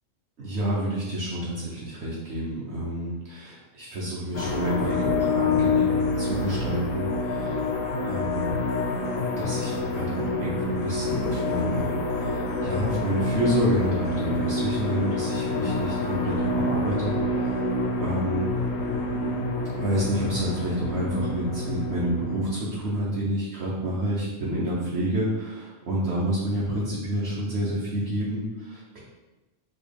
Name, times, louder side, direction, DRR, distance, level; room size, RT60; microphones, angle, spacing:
voice 1, 0.4-7.6 8.0-8.6 9.4-17.6 18.0-18.5 19.8-29.0, right 1 dB, 60° right, -6 dB, 0.9 m, -29 dB
sound 1, 4.3-22.4, left 2 dB, 90° left, 1.0 m, -27 dB
4.0 x 2.2 x 3.3 m, 1.1 s
omnidirectional pair, 1.3 m